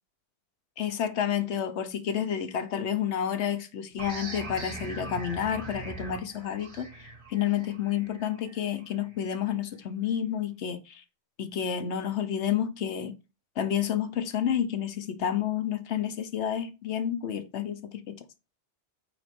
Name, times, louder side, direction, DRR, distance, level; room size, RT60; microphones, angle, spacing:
voice 1, 0.8-11.0 11.4-13.2 13.6-18.2, left 9 dB, 80° left, 1.1 m, -30 dB
sound 1, 4.0-9.3, right 2 dB, 50° right, 1.7 m, -41 dB
8.3 x 3.1 x 5.3 m
omnidirectional pair, 1.1 m